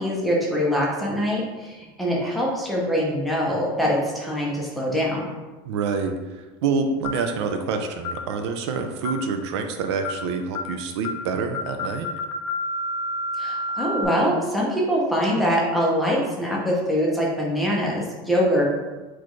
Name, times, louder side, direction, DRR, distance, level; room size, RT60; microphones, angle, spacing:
voice 1, 0.0-5.3 13.4-18.6, equal, ahead, -4 dB, 0.6 m, -23 dB
voice 2, 5.6-12.1, right 5 dB, 85° right, 6 dB, 0.5 m, -27 dB
sound 1, 7.0-7.3 8.0-8.3 9.0-9.3 10.0-10.3 10.5-10.8 11.0-11.3 11.5-14.0, left 2 dB, 65° left, 0.5 m, -29 dB
4.1 x 3.0 x 3.1 m, 1.2 s
cardioid pair, 170°, 14 cm